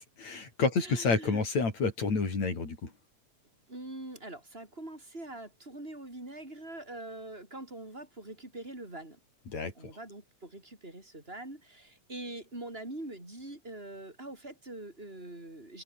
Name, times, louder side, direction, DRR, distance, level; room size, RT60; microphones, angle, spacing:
voice 1, 0.2-2.9 9.5-9.7, left 4 dB, 65° left, 7.0 m, -29 dB
voice 2, 0.8-1.4 3.7-9.2 9.7-15.8, right 1 dB, 20° right, 8.1 m, -43 dB
open air
omnidirectional pair, 3.3 m